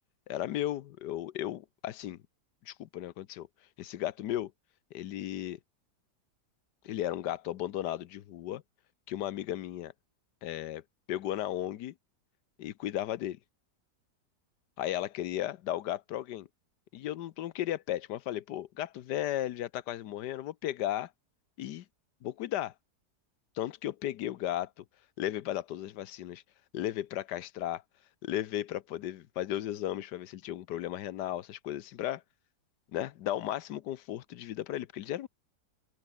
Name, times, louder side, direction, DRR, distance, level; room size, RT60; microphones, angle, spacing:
voice 1, 0.3-2.2 2.6-3.5 3.8-4.5 4.9-5.6 6.8-8.6 9.1-9.9 10.4-10.8 11.1-11.9 12.6-13.4 14.8-16.5 16.9-21.1 21.6-21.8 22.2-22.7 23.5-24.8 25.2-26.4 26.7-27.8 28.2-32.2 32.9-35.3, left 12 dB, 85° left, 1.4 m, -35 dB
open air
omnidirectional pair, 1.8 m